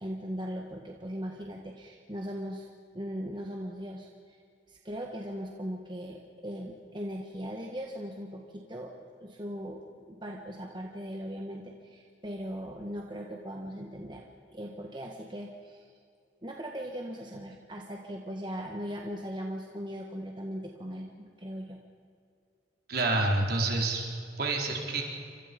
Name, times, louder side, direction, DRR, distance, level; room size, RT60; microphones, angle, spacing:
voice 1, 0.0-2.7 2.9-4.4 4.7-8.9 9.2-14.3 14.5-15.9 16.4-21.8, equal, 25° right, 0 dB, 1.6 m, -39 dB
voice 2, 22.9-24.1 24.4-25.0, right 2 dB, 55° right, 0 dB, 4.1 m, -28 dB
29.0 x 25.5 x 5.3 m, 2.3 s
head